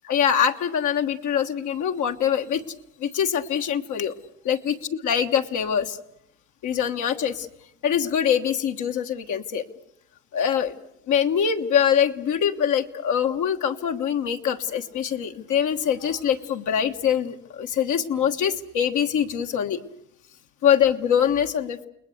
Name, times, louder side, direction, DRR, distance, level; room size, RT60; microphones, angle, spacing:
voice 1, 0.1-2.6 3.0-4.1 4.4-4.8 5.0-6.0 6.6-7.5 7.8-9.6 10.3-10.7 11.1-19.8 20.6-21.9, left 8 dB, 80° left, 4 dB, 1.5 m, -23 dB
29.5 x 20.0 x 8.1 m, 0.78 s
cardioid pair, 90°, 30 cm